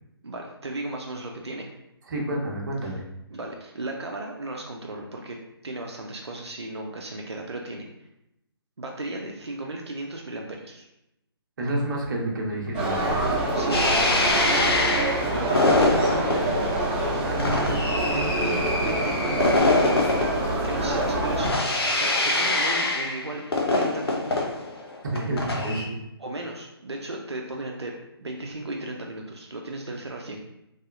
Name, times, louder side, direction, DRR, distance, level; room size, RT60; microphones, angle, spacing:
voice 1, 0.2-1.7 2.8-2.9 3.3-5.4 5.6-7.9 8.8-10.9 13.5-14.6 15.3-17.1 17.5-19.7 20.6-21.7 21.9-23.4 23.7-24.5 26.2-27.9 28.2-30.4, right 2 dB, 85° right, 0 dB, 0.5 m, -35 dB
voice 2, 2.1-3.0 11.6-13.3 17.3-17.5 25.1-25.9, right 1 dB, 50° right, -2 dB, 0.9 m, -29 dB
sound 1, 12.7-21.5, right 1 dB, 25° right, 1.0 m, -25 dB
sound 2, 13.7-25.8, left 2 dB, 70° left, 0.7 m, -25 dB
3.3 x 2.7 x 2.4 m, 0.86 s
figure-of-eight pair, 145°, 14 cm